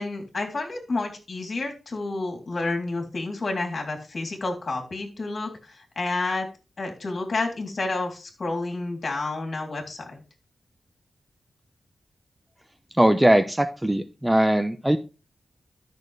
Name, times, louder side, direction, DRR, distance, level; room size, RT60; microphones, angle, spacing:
voice 1, 0.0-6.5 6.8-10.2, left 3 dB, 50° left, 2 dB, 3.3 m, -30 dB
voice 2, 12.9-15.0, right 1 dB, 10° right, 10 dB, 0.8 m, -20 dB
13.0 x 6.7 x 3.3 m, 0.32 s
wide cardioid pair, 90°, 0 cm